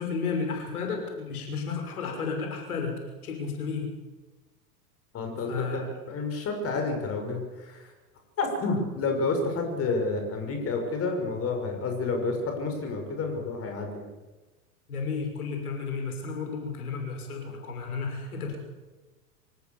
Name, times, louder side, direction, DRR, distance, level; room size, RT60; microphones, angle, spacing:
voice 1, 0.0-3.9 5.5-6.0 14.9-18.6, left 5 dB, 70° left, 3 dB, 6.3 m, -32 dB
voice 2, 5.1-7.9 8.4-14.1, left 3 dB, 30° left, 4 dB, 6.2 m, -30 dB
25.0 x 19.0 x 7.2 m, 1.2 s
figure-of-eight pair, 95°, 46 cm